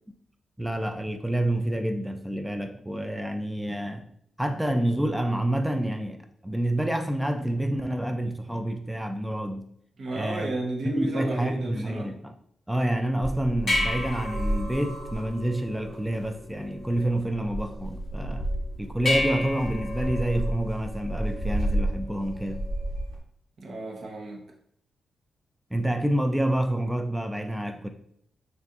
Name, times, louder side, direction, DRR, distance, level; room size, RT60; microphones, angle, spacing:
voice 1, 0.6-4.1 4.4-6.2 6.4-9.6 10.1-10.6 10.8-12.3 12.7-18.5 18.8-22.6 25.7-27.9, right 1 dB, 5° right, 0.3 m, -28 dB
voice 2, 10.0-12.1 23.6-24.4, right 2 dB, 60° right, 0.9 m, -33 dB
sound 1, 13.2-23.2, equal, 45° left, 1.6 m, -30 dB
6.5 x 2.5 x 2.4 m
cardioid pair, 100°, 0 cm